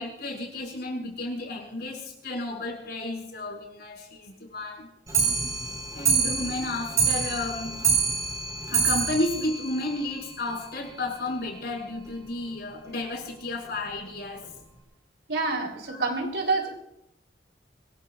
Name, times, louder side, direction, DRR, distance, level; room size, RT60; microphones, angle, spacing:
voice 1, 0.0-4.9 5.9-7.9 8.7-14.5 15.9-16.1, left 2 dB, 65° left, -1 dB, 6.3 m, -32 dB
Clock, 5.1-10.6 10.9-11.0 11.3-11.4 11.7-11.8 12.0-12.1 12.8-12.9 13.6-13.7 14.4-14.5, right 5 dB, 20° right, 4.8 m, -27 dB
voice 2, 15.3-16.7, right 3 dB, 75° right, 1 dB, 3.9 m, -27 dB
25.0 x 21.5 x 2.5 m, 0.81 s
head